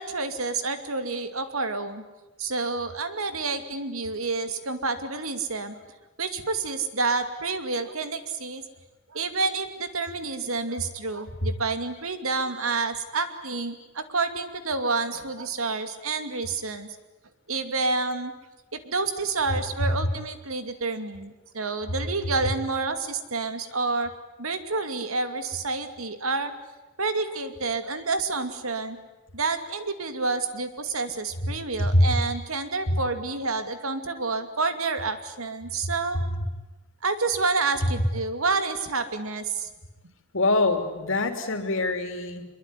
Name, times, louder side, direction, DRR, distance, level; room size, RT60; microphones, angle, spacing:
voice 1, 0.0-2.0 2.4-5.7 6.2-8.6 9.1-16.9 17.5-18.3 18.7-24.1 24.4-26.5 27.0-29.0 29.3-36.2 37.0-39.7, right 3 dB, 85° right, 9 dB, 2.6 m, -29 dB
voice 2, 40.3-42.4, left 2 dB, 65° left, 7 dB, 3.2 m, -23 dB
25.0 x 22.5 x 9.9 m, 1.1 s
head